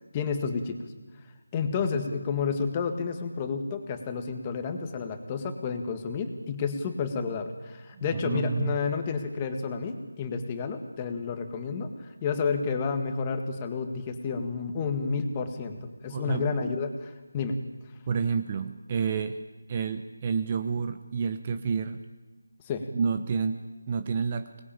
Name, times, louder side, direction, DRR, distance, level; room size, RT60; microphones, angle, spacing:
voice 1, 0.1-0.8 1.5-17.6 22.6-22.9, left 5 dB, 15° left, 6 dB, 1.8 m, -30 dB
voice 2, 7.9-8.8 16.1-16.5 18.1-19.4 19.7-22.0 22.9-24.6, right 5 dB, 25° right, 9 dB, 0.9 m, -29 dB
25.0 x 20.0 x 8.9 m, 1.2 s
figure-of-eight pair, 170°, 0 cm